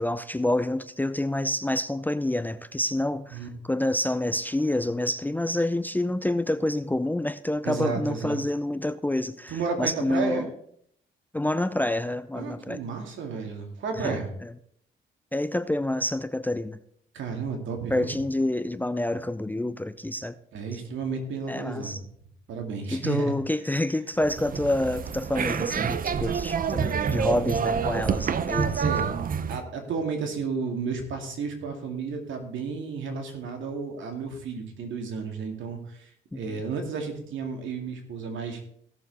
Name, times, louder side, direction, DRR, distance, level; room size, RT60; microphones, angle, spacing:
voice 1, 0.0-10.5 11.3-12.8 14.0-14.5 15.3-16.8 17.9-20.3 21.5-22.0 22.9-28.9 36.3-36.6, left 1 dB, 10° left, 13 dB, 0.5 m, -28 dB
voice 2, 7.6-8.4 9.5-10.4 12.3-14.3 17.1-18.1 20.5-22.0 22.5-23.3 27.3-27.4 28.8-29.1 29.5-38.6, right 5 dB, 75° right, 3 dB, 2.5 m, -32 dB
sound 1, 24.2-29.6, right 6 dB, 45° right, 0.7 m, -27 dB
16.5 x 6.9 x 4.1 m, 0.68 s
cardioid pair, 90°, 20 cm